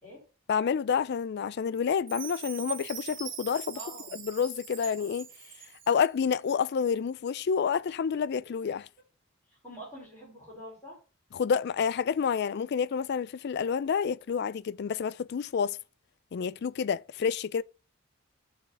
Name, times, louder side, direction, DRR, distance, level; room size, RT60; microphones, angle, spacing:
voice 1, 0.5-3.8 4.2-5.3 5.9-8.9 11.3-15.8 16.3-17.6, left 6 dB, 55° left, 0.4 m, -29 dB
Chime, 2.1-6.1, right 9 dB, 65° right, 1.7 m, -42 dB
voice 2, 3.7-4.2 9.5-11.0, equal, 10° left, 4.2 m, -46 dB
8.9 x 4.2 x 6.5 m
head